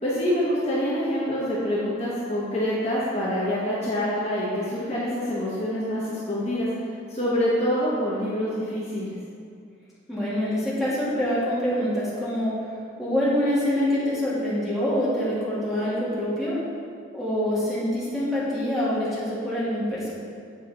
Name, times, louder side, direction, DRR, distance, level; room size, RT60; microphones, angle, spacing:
voice 1, 0.0-6.7 7.1-9.1, equal, 35° left, -8 dB, 1.1 m, -26 dB
voice 2, 10.1-12.5 13.0-16.6 17.1-20.1, equal, ahead, -10 dB, 1.6 m, -25 dB
7.9 x 4.1 x 3.8 m, 2.3 s
head